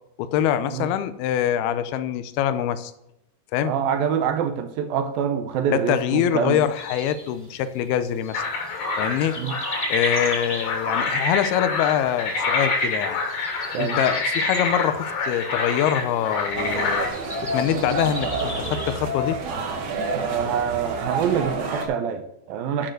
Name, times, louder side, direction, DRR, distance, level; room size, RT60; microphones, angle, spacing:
voice 1, 0.2-2.9 3.5-3.7 5.7-8.4 9.0-9.4 9.9-13.2 13.8-17.1 17.4-19.4, left 10 dB, 80° left, 12 dB, 2.5 m, -24 dB
voice 2, 3.6-6.6 9.4-9.5 13.7-14.0 20.1-22.9, right 7 dB, 75° right, 8 dB, 2.3 m, -25 dB
sound 1, 6.5-19.0, equal, 10° left, 1.6 m, -39 dB
sound 2, 8.3-17.1, left 3 dB, 55° left, 4.1 m, -26 dB
sound 3, 16.6-21.8, right 2 dB, 55° right, 2.9 m, -29 dB
12.0 x 6.5 x 6.5 m, 0.83 s
omnidirectional pair, 5.0 m